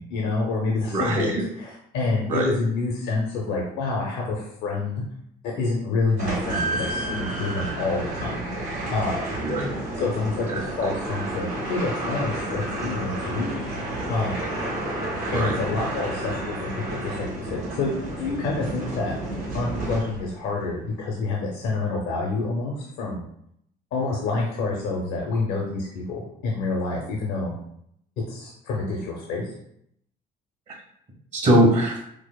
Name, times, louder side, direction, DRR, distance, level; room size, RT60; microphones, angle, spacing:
voice 1, 0.0-5.0 5.4-8.4 8.9-9.3 10.0-13.6 14.1-14.4 15.3-19.1 19.5-23.2 23.9-27.5 28.3-29.5, left 3 dB, 85° left, -2 dB, 0.6 m, -28 dB
voice 2, 0.9-1.5 2.3-2.5 9.4-9.7 10.5-10.9 15.2-15.6 30.7-30.8 31.3-32.0, right 1 dB, 45° right, 0 dB, 1.1 m, -22 dB
sound 1, 6.2-20.4, right 1 dB, 75° right, 1.4 m, -31 dB
4.8 x 2.0 x 2.3 m, 0.73 s
cardioid pair, 110°, 17 cm